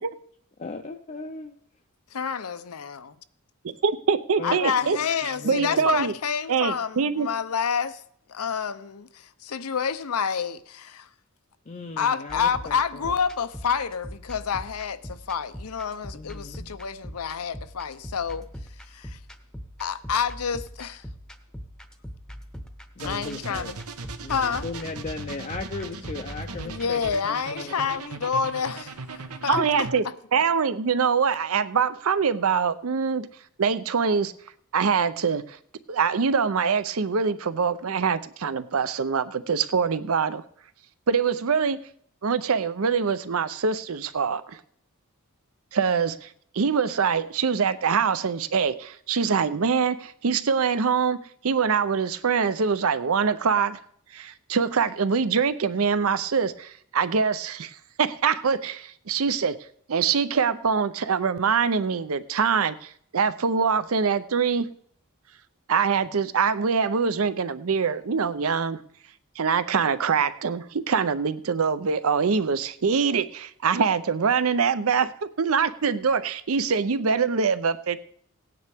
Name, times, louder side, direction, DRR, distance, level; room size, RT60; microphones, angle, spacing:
voice 1, 0.6-1.6 4.4-4.6 5.3-6.1 11.7-13.1 16.1-16.7 23.0-23.7 24.2-27.0 27.5-28.0 29.6-29.7, left 3 dB, 35° left, 0.5 m, -37 dB
voice 2, 2.1-3.2 4.4-8.0 8.3-11.1 12.0-18.5 18.9-19.2 19.8-21.0 23.0-23.8 24.3-24.7 26.6-29.6, left 6 dB, 80° left, 0.7 m, -28 dB
voice 3, 3.6-5.0 5.4-6.1 6.5-7.3 29.5-30.0 30.3-33.3 33.6-34.3 34.7-35.6 35.9-40.4 41.1-41.8 42.2-44.6 45.7-46.3 46.5-53.8 54.1-59.6 59.9-64.7 65.7-68.8 69.4-78.0, right 6 dB, 65° right, 0.6 m, -24 dB
sound 1, 12.3-27.1, equal, 5° left, 0.8 m, -42 dB
sound 2, 23.0-30.0, right 4 dB, 85° right, 1.0 m, -38 dB
18.0 x 9.4 x 3.5 m
head